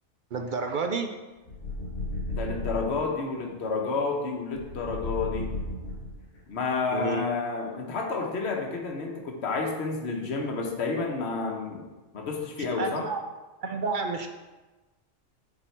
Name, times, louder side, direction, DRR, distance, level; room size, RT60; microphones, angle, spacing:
voice 1, 0.3-1.2 6.9-7.2 12.8-13.2 13.6-14.3, right 4 dB, 55° right, 5 dB, 0.6 m, -30 dB
sound 1, 1.5-3.0 4.5-6.4, left 1 dB, 90° left, 1.7 m, -34 dB
voice 2, 2.3-5.5 6.5-11.9 12.1-13.1, left 4 dB, 60° left, 1 dB, 1.3 m, -30 dB
7.1 x 4.6 x 4.5 m, 1.2 s
omnidirectional pair, 1.3 m